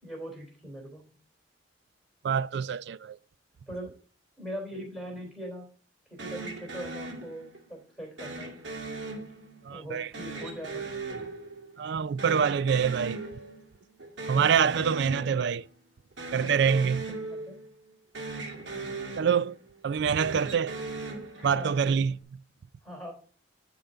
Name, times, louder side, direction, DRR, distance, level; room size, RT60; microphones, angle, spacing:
voice 1, 0.0-1.0 3.7-3.9 4.4-5.7 6.1-8.5 9.7-10.9 16.3-17.6 21.5-22.0 22.8-23.1, equal, ahead, 3.2 m, -41 dB
voice 2, 2.2-3.2 9.6-10.1 11.8-13.2 14.3-15.7 16.3-17.0 19.2-19.6 19.8-20.8 21.4-22.2, right 7 dB, 60° right, 0.3 m, -25 dB
sound 1, 6.2-7.7 8.2-9.7 10.1-11.9 12.2-13.7 14.0-15.7 16.1-17.9 18.1-19.7 20.1-21.9, right 3 dB, 80° right, 2.2 m, -39 dB
10.0 x 3.8 x 5.6 m
head